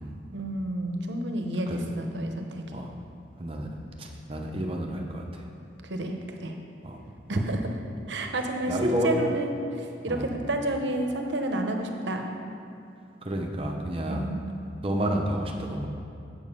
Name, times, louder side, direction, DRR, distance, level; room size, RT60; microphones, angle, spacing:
voice 1, 0.3-2.8 5.8-6.6 7.3-7.8 8.1-9.5 9.8-12.3 14.1-14.4, right 1 dB, 75° right, 4 dB, 0.8 m, -30 dB
voice 2, 4.0-5.2 6.8-7.0 7.3-7.4 8.7-9.1 10.1-10.3 13.2-14.3 14.8-15.9, equal, 30° right, 1 dB, 0.8 m, -30 dB
7.4 x 7.1 x 5.5 m, 2.6 s
head